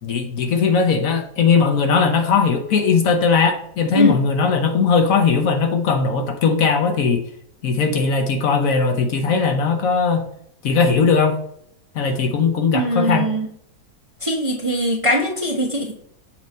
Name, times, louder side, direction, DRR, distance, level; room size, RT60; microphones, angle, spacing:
voice 1, 0.0-7.2 7.6-10.2 10.6-11.4 11.9-13.3, left 5 dB, 65° left, 4 dB, 1.1 m, -18 dB
voice 2, 12.7-13.5 14.2-15.9, equal, 30° right, -2 dB, 0.7 m, -21 dB
7.3 x 2.9 x 5.3 m, 0.68 s
omnidirectional pair, 1.7 m